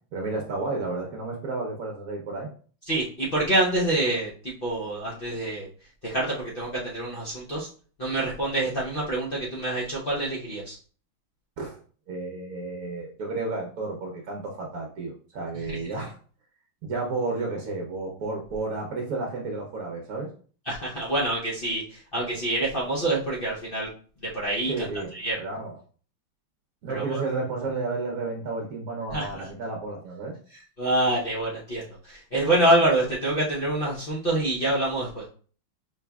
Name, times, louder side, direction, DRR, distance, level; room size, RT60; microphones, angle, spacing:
voice 1, 0.1-2.5 11.6-11.8 12.1-16.2 16.8-20.3 24.7-25.1 25.4-25.8 26.8-30.4, right 3 dB, 60° right, -1 dB, 1.0 m, -32 dB
voice 2, 2.9-4.3 4.6-5.7 6.0-7.7 8.0-10.8 15.7-15.8 20.7-23.9 24.2-24.8 25.1-25.4 26.9-27.2 29.1-29.5 30.8-35.3, right 1 dB, 90° left, -5 dB, 0.4 m, -26 dB
5.1 x 3.2 x 2.3 m, 0.42 s
omnidirectional pair, 2.3 m